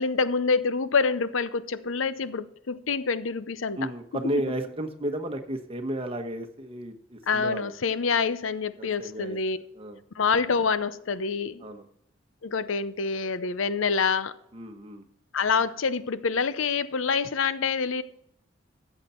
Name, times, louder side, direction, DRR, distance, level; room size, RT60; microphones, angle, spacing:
voice 1, 0.0-3.8 7.3-9.6 10.2-11.7 12.4-14.3 15.3-18.0, left 5 dB, 80° left, 0.7 m, -26 dB
voice 2, 3.8-7.7 8.8-9.4 9.7-10.0 11.6-11.8 14.5-15.0, right 1 dB, 30° right, 1.2 m, -33 dB
14.0 x 8.2 x 4.4 m
head